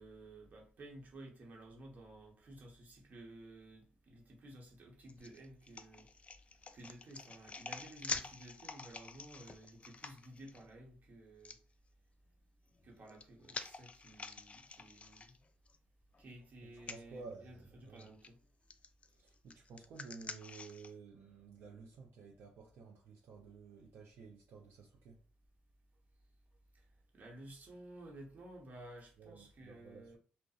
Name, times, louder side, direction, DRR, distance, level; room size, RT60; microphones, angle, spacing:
voice 1, 0.0-6.1 6.7-11.6 12.8-15.4 16.2-17.5 17.8-18.4 27.1-30.2, right 1 dB, 50° right, 0.9 m, -54 dB
sound 1, 5.1-10.6 11.4-11.6 12.7-15.8 16.1-16.2 16.8-17.0 18.0-18.3 18.7-20.9, left 4 dB, 35° left, 0.3 m, -47 dB
voice 2, 16.6-18.2 19.0-25.2 29.2-30.2, right 4 dB, 70° right, 0.5 m, -53 dB
2.6 x 2.0 x 2.3 m
supercardioid pair, 70°, 4 cm